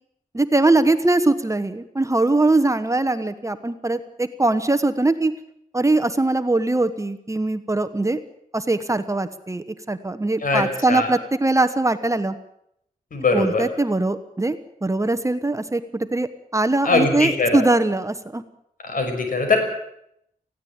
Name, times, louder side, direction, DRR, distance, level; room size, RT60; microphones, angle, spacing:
voice 1, 0.3-5.3 5.7-8.2 8.5-12.3 13.3-18.4, right 2 dB, 20° right, 11 dB, 1.2 m, -21 dB
voice 2, 10.4-11.1 13.1-13.6 16.8-17.6 18.8-19.6, left 3 dB, 70° left, 5 dB, 5.8 m, -21 dB
19.5 x 15.5 x 8.9 m, 0.76 s
wide cardioid pair, 95°, 14 cm